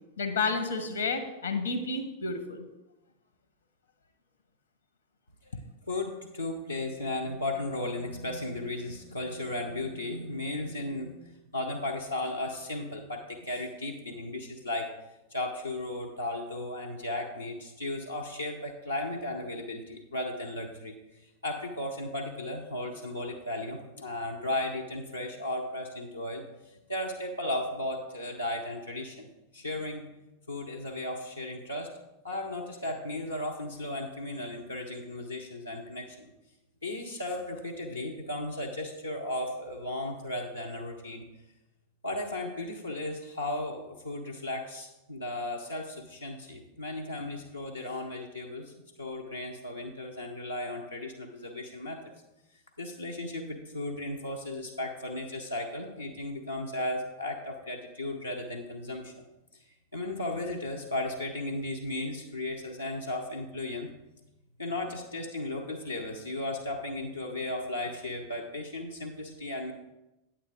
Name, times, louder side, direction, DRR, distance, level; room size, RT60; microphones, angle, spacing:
voice 1, 0.2-2.7, left 4 dB, 65° left, 7 dB, 1.1 m, -30 dB
voice 2, 5.8-14.9 15.3-29.3 29.5-30.0 30.5-31.9 32.2-36.3 36.8-41.3 42.0-48.7 49.0-52.0 52.8-59.2 59.9-63.9 64.6-69.7, left 1 dB, 85° left, -2 dB, 0.9 m, -35 dB
9.1 x 8.5 x 3.7 m, 0.97 s
figure-of-eight pair, 90°, 0 cm